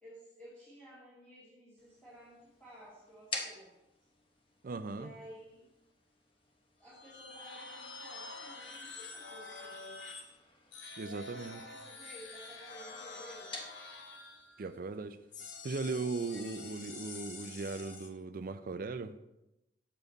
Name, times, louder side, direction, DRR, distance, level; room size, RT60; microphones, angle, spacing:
voice 1, 0.0-3.8 4.9-5.6 6.8-10.3 11.0-13.7, equal, 10° left, -11 dB, 2.3 m, -54 dB
sound 1, 1.8-16.1, left 3 dB, 30° left, 1.0 m, -51 dB
voice 2, 4.6-5.1 11.0-11.6 14.6-15.2 15.6-19.1, right 3 dB, 50° right, 11 dB, 0.5 m, -38 dB
sound 2, 6.9-10.3 10.7-14.7 15.3-18.1, left 3 dB, 80° left, 1.1 m, -47 dB
7.1 x 6.8 x 4.0 m, 0.90 s
head